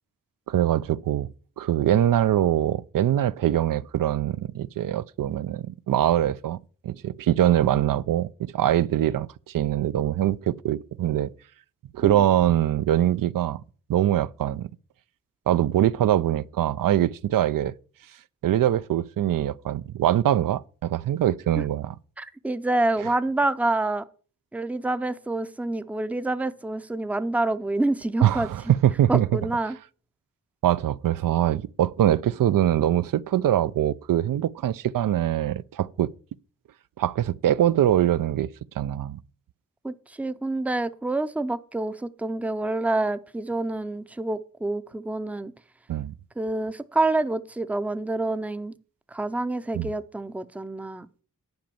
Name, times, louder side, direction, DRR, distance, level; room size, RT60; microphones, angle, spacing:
voice 1, 0.5-1.3 1.6-6.6 6.8-11.3 11.9-13.6 13.9-14.7 15.5-17.7 18.4-21.9 28.2-29.4 30.6-36.1 37.0-38.5 38.8-39.2 45.9-46.1 49.7-49.9, right 12 dB, 90° right, 0.5 m, -23 dB
voice 2, 22.2-24.0 24.5-28.5 29.1-29.8 39.8-45.5 46.4-48.8 49.1-51.1, right 2 dB, 5° right, 0.5 m, -27 dB
10.5 x 5.1 x 6.9 m
wide cardioid pair, 155°, 32 cm